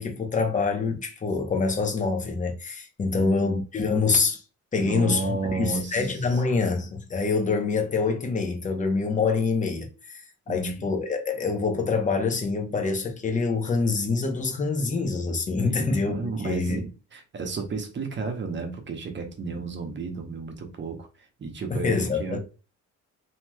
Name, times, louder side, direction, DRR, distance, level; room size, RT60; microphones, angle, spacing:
voice 1, 0.0-4.4 4.7-10.2 10.5-16.8 21.7-22.4, left 4 dB, 25° left, 0.7 m, -26 dB
voice 2, 4.7-6.6 10.5-10.9 15.6-22.4, right 4 dB, 40° right, 0.8 m, -33 dB
3.0 x 2.8 x 2.2 m
cardioid pair, 90°, 30 cm